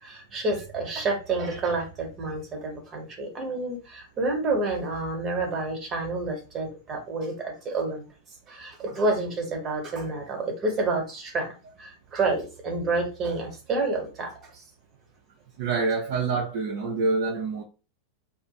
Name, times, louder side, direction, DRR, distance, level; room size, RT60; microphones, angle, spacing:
voice 1, 0.0-8.0 8.5-11.5 11.8-14.3, right 3 dB, 25° right, 1.1 m, -29 dB
voice 2, 15.6-17.6, right 4 dB, 50° right, 0.5 m, -26 dB
2.5 x 2.4 x 3.0 m
figure-of-eight pair, 90°, 0 cm